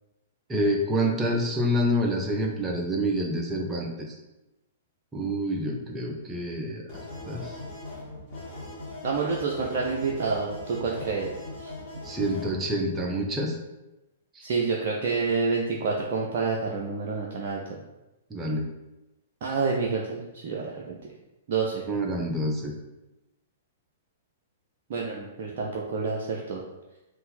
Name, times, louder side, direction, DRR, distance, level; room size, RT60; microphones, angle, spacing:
voice 1, 0.5-3.9 5.1-7.5 12.0-13.6 14.4-14.5 18.3-18.7 21.9-22.7, equal, 15° right, 0 dB, 0.7 m, -27 dB
sound 1, 6.9-12.5, left 2 dB, 35° left, 1.5 m, -40 dB
voice 2, 9.0-11.3 11.6-11.7 14.4-17.6 19.4-21.0 21.5-21.8 24.9-26.6, right 4 dB, 45° right, -2 dB, 0.5 m, -28 dB
3.8 x 2.6 x 4.0 m, 0.98 s
figure-of-eight pair, 110°, 0 cm